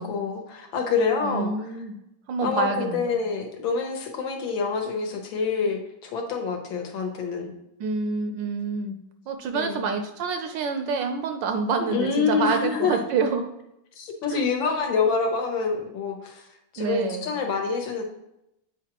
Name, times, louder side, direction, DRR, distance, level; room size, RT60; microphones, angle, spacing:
voice 1, 0.0-1.5 2.4-7.5 9.5-9.9 11.8-13.0 14.0-16.5 16.7-18.0, left 5 dB, 70° left, 3 dB, 1.6 m, -26 dB
voice 2, 1.2-2.0 2.3-3.2 7.8-9.0 9.3-13.5 14.3-14.4 16.8-17.3, right 5 dB, 75° right, 6 dB, 1.1 m, -27 dB
8.0 x 4.8 x 2.9 m, 0.84 s
omnidirectional pair, 2.3 m